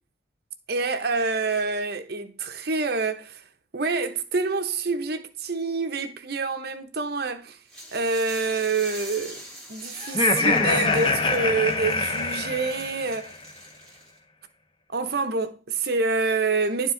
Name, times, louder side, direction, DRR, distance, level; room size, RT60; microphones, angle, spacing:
voice 1, 0.7-3.4 3.7-7.6 7.9-9.4 9.7-13.3 14.9-16.9, right 4 dB, 50° right, 0.8 m, -27 dB
sound 1, 7.7-14.2, right 1 dB, 5° left, 2.5 m, -43 dB
Laughter, 10.0-13.2, left 3 dB, 25° left, 0.6 m, -24 dB
10.5 x 4.7 x 3.8 m
head